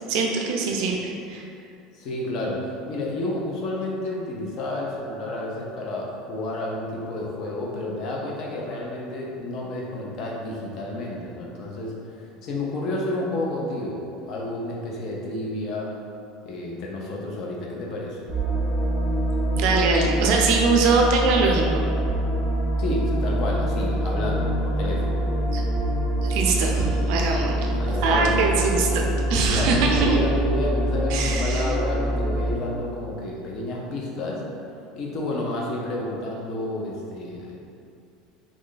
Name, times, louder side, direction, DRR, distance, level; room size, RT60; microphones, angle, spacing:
voice 1, 0.1-1.4 19.5-21.9 25.5-25.6 26.2-27.7 28.0-29.0 29.3-30.2 31.1-31.7, right 4 dB, 55° right, 0 dB, 0.4 m, -22 dB
voice 2, 1.9-15.9 16.4-18.3 22.8-25.2 27.2-28.6 29.4-34.4 34.9-37.6, left 1 dB, 40° left, -2 dB, 0.5 m, -30 dB
sound 1, 18.3-32.5, right 1 dB, 75° left, 1.5 m, -25 dB
3.1 x 2.4 x 3.8 m, 2.5 s
cardioid pair, 170°, 0 cm